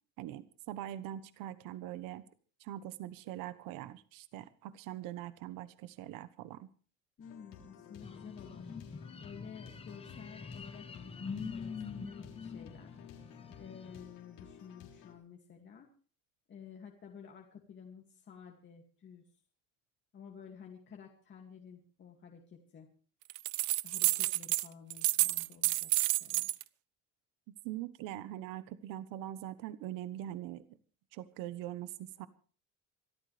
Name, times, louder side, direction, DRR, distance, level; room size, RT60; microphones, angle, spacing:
voice 1, 0.2-2.2 2.6-6.7 27.5-30.8 31.1-32.3, right 13 dB, 85° right, 14 dB, 1.1 m, -42 dB
sound 1, 7.2-15.2, left 8 dB, 80° left, 3.9 m, -55 dB
voice 2, 7.2-8.7 9.2-13.0 13.6-15.9 16.5-19.2 20.1-22.9 23.8-26.6, left 7 dB, 35° left, 0 dB, 2.3 m, -52 dB
sound 2, 8.0-14.0, left 5 dB, 20° left, 1.0 m, -45 dB
sound 3, 23.3-24.7 24.9-26.6, right 19 dB, 70° right, 0.6 m, -30 dB
25.0 x 13.5 x 3.4 m, 0.39 s
cardioid pair, 155°, 32 cm